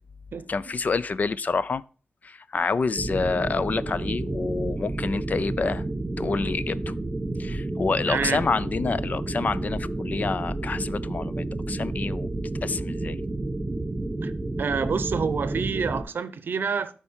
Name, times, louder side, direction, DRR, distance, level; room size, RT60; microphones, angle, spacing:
voice 1, 0.5-1.8 2.2-5.8 6.2-6.9 7.4-12.3 12.6-13.2, left 4 dB, 45° left, 0.3 m, -28 dB
sound 1, 3.0-16.0, right 2 dB, 25° right, 1.1 m, -30 dB
voice 2, 8.1-8.4 14.2-14.3 14.6-16.9, right 5 dB, 65° right, 0.6 m, -27 dB
12.0 x 4.5 x 4.4 m
wide cardioid pair, 100°, 4 cm